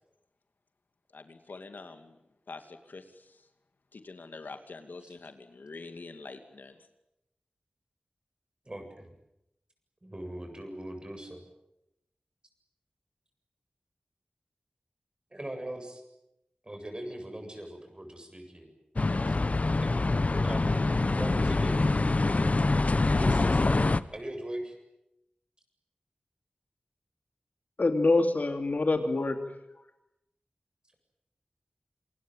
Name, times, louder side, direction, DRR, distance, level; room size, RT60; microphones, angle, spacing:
voice 1, 1.1-2.2 2.5-3.4 3.9-6.8, left 3 dB, 85° left, 7 dB, 2.6 m, -45 dB
voice 2, 8.6-9.1 10.0-11.4 15.3-16.0 16.6-18.7 19.3-19.4 19.8-19.9 20.3-21.8 22.7-24.8, right 1 dB, 30° right, 5 dB, 7.8 m, -41 dB
sound 1, 19.0-24.0, left 2 dB, 50° left, 1.0 m, -25 dB
voice 3, 27.8-29.4, left 2 dB, 65° left, 6 dB, 2.9 m, -25 dB
27.5 x 21.0 x 9.2 m, 0.85 s
wide cardioid pair, 55°, 3 cm